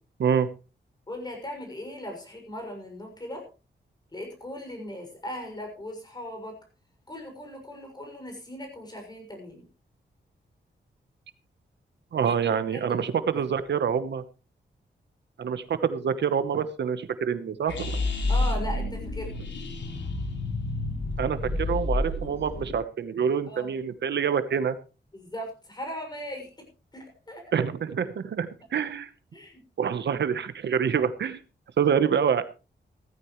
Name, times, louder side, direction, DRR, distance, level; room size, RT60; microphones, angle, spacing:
voice 1, 1.1-3.5 4.1-6.6 7.1-9.7 12.2-12.3 12.7-13.4 18.3-19.5 23.5-23.7 25.1-26.6 26.9-27.4 29.3-29.6, equal, 20° left, 3 dB, 6.4 m, -38 dB
voice 2, 12.1-14.2 15.4-18.0 21.2-24.8 27.5-29.1 29.8-31.4 31.8-32.4, right 7 dB, 75° right, 12 dB, 1.1 m, -26 dB
sound 1, 17.7-22.8, left 2 dB, 85° left, 4.1 m, -29 dB
16.5 x 14.5 x 3.2 m, 0.32 s
wide cardioid pair, 145°, 18 cm